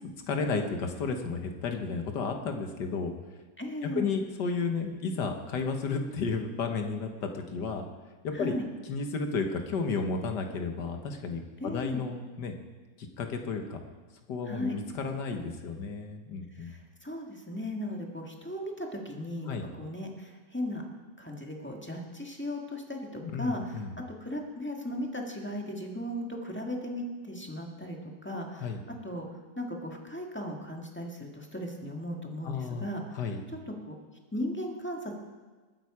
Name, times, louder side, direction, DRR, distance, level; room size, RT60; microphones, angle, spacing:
voice 1, 0.3-3.1 4.0-7.9 8.2-8.5 8.9-12.5 13.0-13.9 14.3-16.7 19.5-19.7 23.2-24.0 28.6-28.8 32.4-32.8 33.1-33.4, left 4 dB, 75° left, 5 dB, 1.8 m, -32 dB
voice 2, 3.6-4.1 8.3-8.6 11.6-12.0 14.4-14.7 16.5-20.8 21.2-29.2 29.5-33.2 33.7-33.9 34.3-35.2, left 1 dB, 5° left, 0 dB, 1.5 m, -37 dB
20.5 x 9.0 x 4.9 m, 1.3 s
omnidirectional pair, 1.9 m